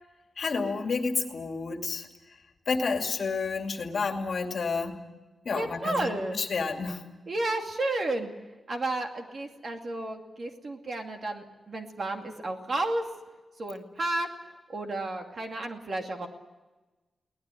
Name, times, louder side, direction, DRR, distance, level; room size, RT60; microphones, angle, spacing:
voice 1, 0.4-2.1 2.7-5.0 5.4-7.0, left 4 dB, 50° left, 4 dB, 2.5 m, -30 dB
voice 2, 5.5-6.4 7.3-8.3 8.7-13.0 13.6-14.3 14.7-16.3, right 2 dB, 40° right, 3 dB, 2.5 m, -32 dB
23.0 x 18.5 x 9.9 m, 1.2 s
wide cardioid pair, 175°, 0 cm